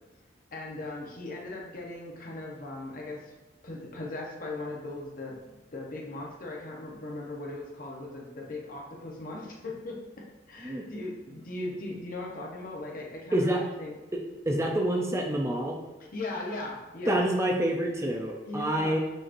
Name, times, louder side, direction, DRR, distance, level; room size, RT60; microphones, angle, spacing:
voice 1, 0.5-3.4 3.6-13.5 13.8-13.9 16.0-17.2 18.4-19.0, left 2 dB, 50° left, -2 dB, 0.9 m, -38 dB
voice 2, 13.3-13.6 14.1-14.2 14.5-15.8 17.1-19.0, right 1 dB, 15° right, 1 dB, 0.4 m, -27 dB
6.3 x 3.0 x 2.6 m, 1.0 s
head